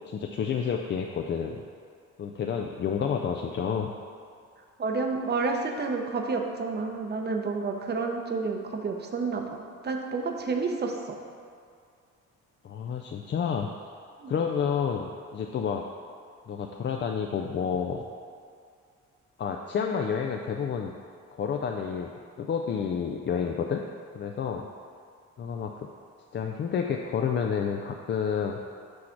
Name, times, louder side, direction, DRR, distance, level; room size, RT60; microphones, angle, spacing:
voice 1, 0.1-1.6 2.2-3.9 12.6-13.7 14.3-15.8 16.5-18.0 19.4-20.9 21.3-22.1 22.4-23.8 24.1-24.7 25.4-25.9 26.3-28.6, left 7 dB, 40° left, 2 dB, 0.4 m, -29 dB
voice 2, 4.8-9.4 9.8-11.2 14.2-14.3, right 4 dB, 35° right, 3 dB, 0.7 m, -30 dB
6.2 x 3.2 x 5.8 m, 2.2 s
cardioid pair, 90°, 30 cm